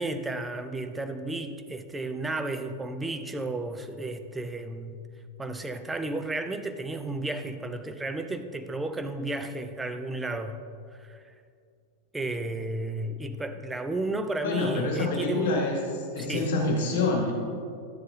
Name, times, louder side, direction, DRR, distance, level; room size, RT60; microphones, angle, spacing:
voice 1, 0.0-5.0 5.4-10.6 10.9-11.2 12.1-15.7 16.2-16.5, right 2 dB, 10° right, 7 dB, 0.5 m, -33 dB
voice 2, 14.4-15.8 16.1-17.3, left 3 dB, 55° left, -1 dB, 1.7 m, -26 dB
11.5 x 7.8 x 2.8 m, 2.3 s
figure-of-eight pair, 90°, 0 cm